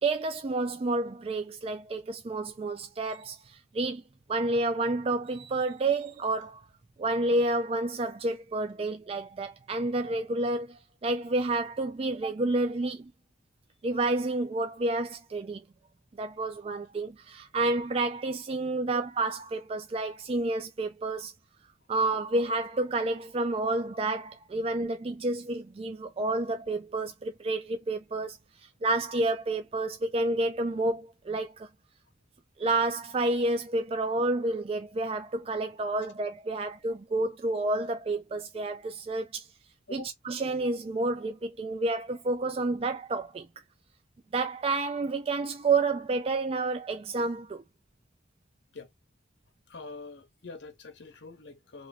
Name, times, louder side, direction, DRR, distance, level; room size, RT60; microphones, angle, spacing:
voice 1, 0.0-4.0 4.3-6.6 7.0-13.0 13.8-15.6 16.2-21.3 21.9-28.4 28.8-31.7 32.6-39.5 39.9-43.5 44.3-47.6, right 2 dB, 30° right, 0.3 m, -29 dB
voice 2, 49.7-51.9, left 3 dB, 75° left, 0.7 m, -45 dB
2.9 x 2.6 x 3.1 m
head